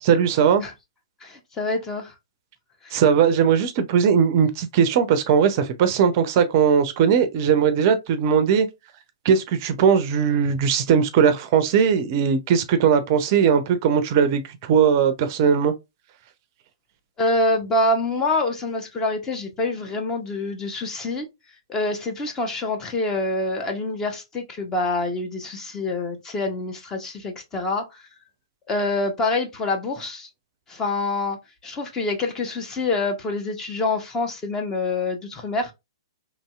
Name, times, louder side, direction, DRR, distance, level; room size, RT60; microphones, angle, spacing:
voice 1, 0.0-0.6 2.9-8.7 9.2-15.7, right 7 dB, 40° right, 0.4 m, -19 dB
voice 2, 1.2-2.1 2.8-3.0 17.2-21.3 21.7-28.0 28.7-30.3 30.7-31.4 31.6-35.7, left 2 dB, 20° left, 0.7 m, -26 dB
2.9 x 2.7 x 2.3 m
figure-of-eight pair, 120°, 2 cm